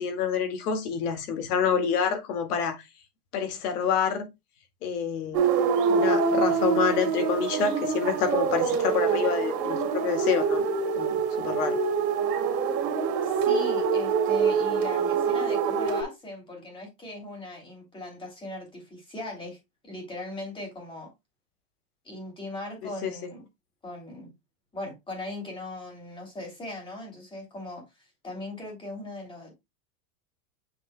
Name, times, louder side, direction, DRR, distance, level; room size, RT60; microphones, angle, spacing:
voice 1, 0.0-2.8 3.3-4.3 4.8-5.4 5.9-10.6 11.0-11.8 22.8-23.1, left 6 dB, 65° left, 2.1 m, -27 dB
sound 1, 5.3-16.0, right 6 dB, 75° right, 2.1 m, -25 dB
voice 2, 13.2-19.6 19.8-21.1 22.0-23.5 23.8-24.3 24.7-27.8 28.2-29.5, left 2 dB, 10° left, 2.8 m, -39 dB
7.3 x 6.1 x 2.2 m
supercardioid pair, 165°, 48 cm